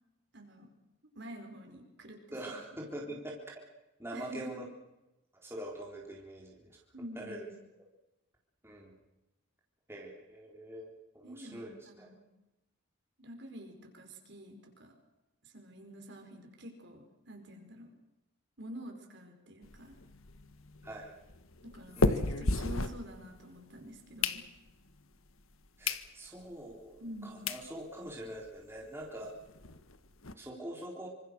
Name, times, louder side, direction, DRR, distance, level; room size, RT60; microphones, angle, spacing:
voice 1, 0.3-0.7 1.2-2.2 2.5-2.8 3.1-3.2 4.1-4.4 6.9-7.5 11.2-12.2 13.2-14.9 15.4-17.9 18.6-20.0 21.6-24.4 27.0-27.5, equal, 55° right, 3 dB, 5.2 m, -48 dB
voice 2, 2.3-3.4 4.0-4.6 5.3-6.8 7.1-7.5 8.6-8.9 9.9-12.1 20.8-21.1 22.0-22.2 25.8-29.3 30.4-31.1, right 1 dB, 10° right, -2 dB, 3.9 m, -44 dB
sound 1, 19.6-23.6 24.0-24.9 25.4-25.5 25.8-26.1 26.5-26.6 27.2-27.3 27.5-27.7 28.1-28.2 28.4-28.5 28.8-28.9 29.2-30.3, left 2 dB, 75° left, 1.6 m, -34 dB
27.0 x 25.5 x 6.6 m, 0.98 s
head